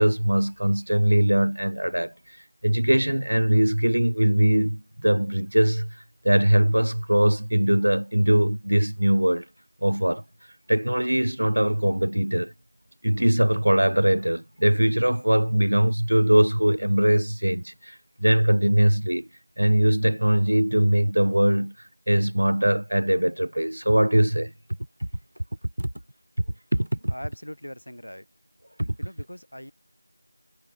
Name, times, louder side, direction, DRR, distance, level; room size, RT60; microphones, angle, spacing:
voice 1, 0.0-2.1 2.6-5.9 6.2-9.4 9.8-10.2 10.7-12.5 13.0-19.3 19.6-21.7 22.1-24.5 25.8-25.9 26.7-27.1 28.8-29.0, right 1 dB, 70° right, 0.4 m, -21 dB
voice 2, 27.1-28.3 29.0-29.7, equal, 80° left, 7.1 m, -40 dB
figure-of-eight pair, 175°, 0 cm